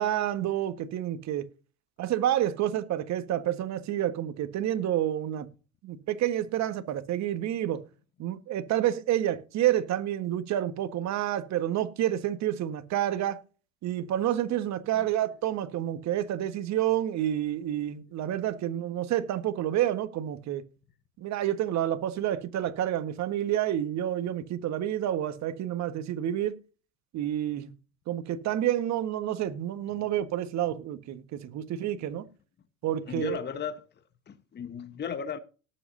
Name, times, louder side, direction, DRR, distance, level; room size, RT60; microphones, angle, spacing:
voice 1, 0.0-1.5 2.0-5.5 5.8-7.8 8.2-13.4 13.8-20.6 21.2-26.6 27.1-27.7 28.1-32.2 32.8-33.4, right 12 dB, 45° right, 1.5 m, -29 dB
voice 2, 33.1-33.8 34.3-35.4, left 7 dB, 25° left, 1.3 m, -35 dB
18.5 x 7.7 x 2.7 m
hypercardioid pair, 90°, 39 cm